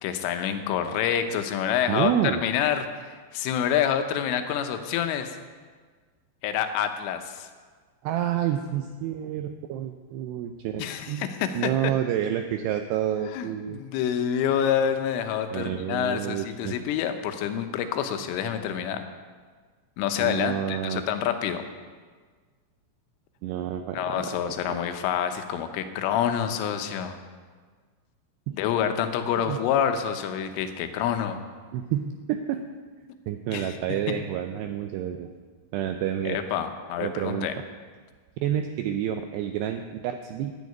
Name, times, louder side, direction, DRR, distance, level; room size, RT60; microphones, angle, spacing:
voice 1, 0.0-2.1 2.4-5.4 6.4-7.5 10.8-11.8 13.3-19.0 20.0-21.6 23.9-27.2 28.5-31.4 33.5-33.8 34.1-34.2 36.3-37.6, left 9 dB, 85° left, 8 dB, 3.5 m, -27 dB
voice 2, 1.9-2.4 8.0-11.3 11.6-13.8 15.5-16.8 20.2-21.0 23.4-24.4 24.7-24.8 28.5-28.6 29.5-29.6 31.7-32.6 33.3-35.3 35.7-36.4 37.0-37.5 38.4-40.6, right 10 dB, 90° right, 6 dB, 2.4 m, -29 dB
11.5 x 9.4 x 9.3 m, 1.5 s
omnidirectional pair, 5.6 m